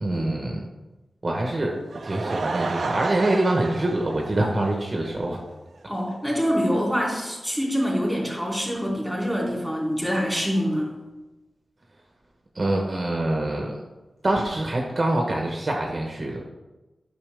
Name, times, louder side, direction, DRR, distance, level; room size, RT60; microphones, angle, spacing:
voice 1, 0.0-0.6 1.2-1.8 2.0-5.4 12.5-13.8 14.2-16.4, right 1 dB, 35° right, 0 dB, 1.0 m, -25 dB
Laughter / Crowd, 1.7-5.2 5.5-5.6 6.1-6.2 6.4-6.5, right 3 dB, 60° right, 0.5 m, -31 dB
voice 2, 5.9-10.9, equal, ahead, -4 dB, 3.1 m, -25 dB
11.0 x 5.8 x 3.4 m, 1.1 s
wide cardioid pair, 110°, 0 cm